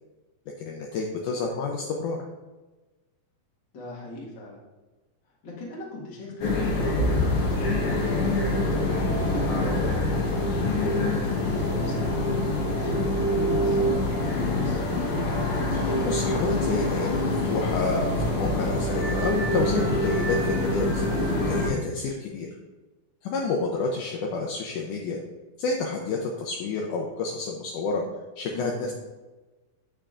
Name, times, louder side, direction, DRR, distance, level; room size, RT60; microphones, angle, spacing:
voice 1, 0.6-2.2 11.1-11.2 15.7-22.5 23.2-25.2 25.6-28.0 28.4-28.9, left 4 dB, 85° left, 0 dB, 1.8 m, -29 dB
voice 2, 3.7-4.6 5.4-10.5 10.7-14.8 28.5-28.9, left 2 dB, 50° left, -4 dB, 1.5 m, -41 dB
sound 1, 6.4-21.7, left 1 dB, 65° left, 2.3 m, -25 dB
9.0 x 5.8 x 2.5 m, 1.2 s
omnidirectional pair, 4.3 m